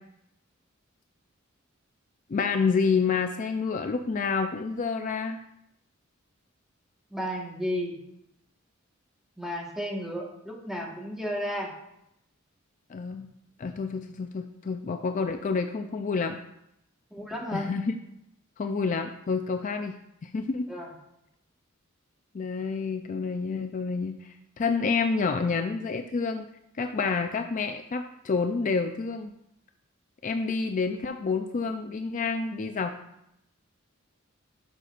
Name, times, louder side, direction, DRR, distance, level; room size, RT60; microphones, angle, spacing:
voice 1, 2.3-5.4 12.9-13.3 13.6-16.4 17.5-18.0 18.6-20.7 22.3-26.5 26.8-29.3 30.2-32.9, left 4 dB, 40° left, 6 dB, 0.4 m, -28 dB
voice 2, 7.1-8.0 9.4-11.7 17.1-17.7 20.7-20.9, equal, ahead, -2 dB, 1.4 m, -33 dB
11.5 x 6.5 x 2.5 m, 0.81 s
head